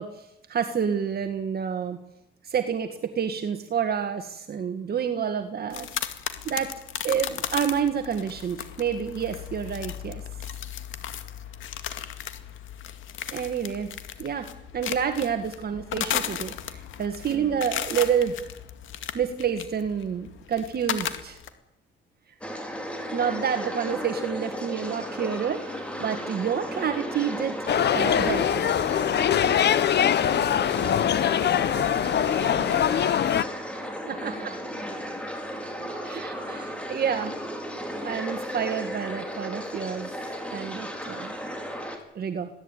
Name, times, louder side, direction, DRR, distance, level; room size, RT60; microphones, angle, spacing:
voice 1, 0.0-2.0 2.4-6.1 6.5-6.7 7.0-10.2 13.3-13.9 14.2-18.4 19.1-21.4 23.1-27.6 27.9-28.8 34.1-34.5 36.1-37.4 38.0-40.1 40.5-41.3 42.2-42.5, right 7 dB, 50° right, 7 dB, 1.9 m, -29 dB
sound 1, 5.7-21.5, left 10 dB, 80° left, 2.1 m, -35 dB
sound 2, 22.4-42.0, equal, 5° left, 5.1 m, -35 dB
sound 3, 27.7-33.4, left 9 dB, 60° left, 1.0 m, -23 dB
voice 2, 34.0-36.1, left 1 dB, 35° left, 1 dB, 7.1 m, -48 dB
22.5 x 16.5 x 9.1 m, 0.85 s
cardioid pair, 90°, 20 cm